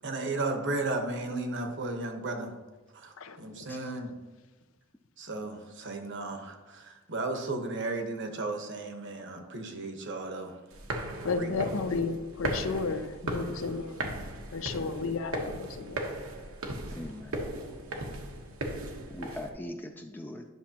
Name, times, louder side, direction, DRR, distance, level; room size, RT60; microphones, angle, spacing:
voice 1, 0.0-2.5 2.9-4.1 5.2-10.6 11.2-11.7, right 2 dB, 60° right, 1.1 m, -35 dB
sound 1, 10.7-19.5, right 1 dB, 80° right, 1.1 m, -37 dB
voice 2, 11.2-14.1 14.5-16.1, left 4 dB, 70° left, 0.6 m, -33 dB
voice 3, 16.9-17.4 19.1-20.5, left 1 dB, 10° left, 0.4 m, -41 dB
10.5 x 6.1 x 2.9 m
head